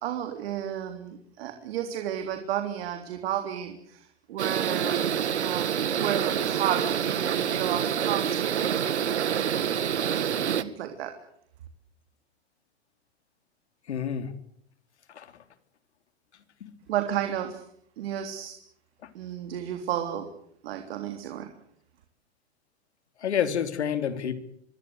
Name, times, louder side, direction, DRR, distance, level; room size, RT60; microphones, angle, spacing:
voice 1, 0.0-5.1 5.3-8.8 9.1-9.7 10.1-10.3 10.6-11.1 16.9-17.6 18.0-18.5 19.1-20.3 20.6-21.5, right 10 dB, 65° right, 6 dB, 3.6 m, -32 dB
sound 1, 4.4-10.6, right 8 dB, 85° right, 2.0 m, -27 dB
voice 2, 13.9-14.3 15.1-15.3 16.6-16.8 19.0-19.1 23.2-24.3, left 8 dB, 80° left, 10 dB, 3.5 m, -29 dB
25.5 x 23.0 x 8.1 m, 0.69 s
hypercardioid pair, 125°, 33 cm